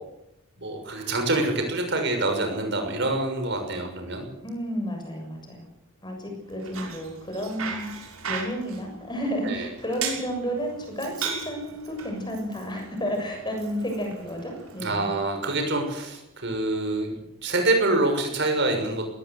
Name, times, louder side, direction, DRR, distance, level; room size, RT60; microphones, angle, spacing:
voice 1, 0.6-4.3 9.4-9.7 14.8-17.2 17.4-19.1, right 2 dB, 50° right, 4 dB, 6.4 m, -26 dB
voice 2, 4.4-5.6 6.0-7.9 8.3-15.1, equal, 20° left, 3 dB, 7.0 m, -31 dB
Bicycle, 6.5-14.8, right 6 dB, 75° right, 6.6 m, -37 dB
21.0 x 18.5 x 8.3 m, 0.83 s
head